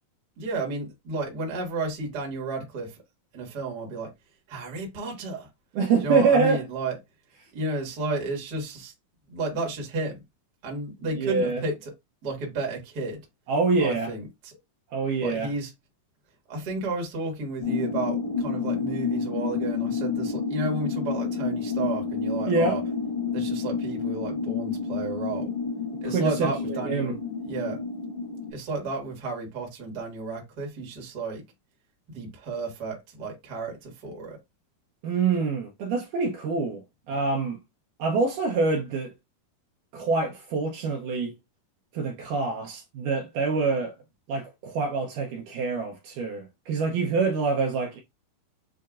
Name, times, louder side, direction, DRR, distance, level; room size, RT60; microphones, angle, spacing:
voice 1, 0.4-3.0 3.3-4.1 4.5-5.5 6.0-7.0 7.5-8.9 9.3-10.2 10.6-11.9 12.2-13.2 13.8-14.5 15.2-15.7 16.5-22.8 23.3-25.5 26.0-27.1 27.5-27.8 28.5-31.4 32.1-34.4, right 3 dB, 45° right, 1.3 m, -32 dB
voice 2, 5.8-6.6 11.2-11.6 13.5-14.1 14.9-15.5 22.5-22.8 26.0-26.3 26.7-27.2 35.0-37.6 38.0-39.1 39.9-41.3 41.9-43.9 44.3-48.0, right 4 dB, 75° right, 2.0 m, -26 dB
sound 1, 17.6-28.5, left 5 dB, 60° left, 2.6 m, -29 dB
7.4 x 2.8 x 2.4 m
omnidirectional pair, 4.2 m